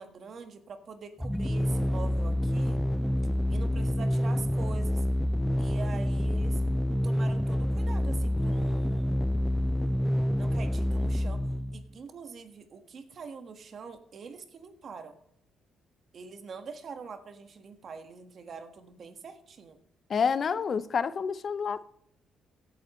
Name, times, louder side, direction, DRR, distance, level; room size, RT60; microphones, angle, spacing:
voice 1, 0.0-2.8 3.5-5.0 5.6-6.6 7.0-9.2 10.4-11.4 11.7-15.2 16.1-19.8, right 5 dB, 55° right, 1.6 m, -44 dB
sound 1, 1.2-11.9, equal, ahead, 0.4 m, -27 dB
voice 2, 20.1-21.8, left 6 dB, 50° left, 0.6 m, -28 dB
16.5 x 8.7 x 3.1 m
cardioid pair, 90°, 0 cm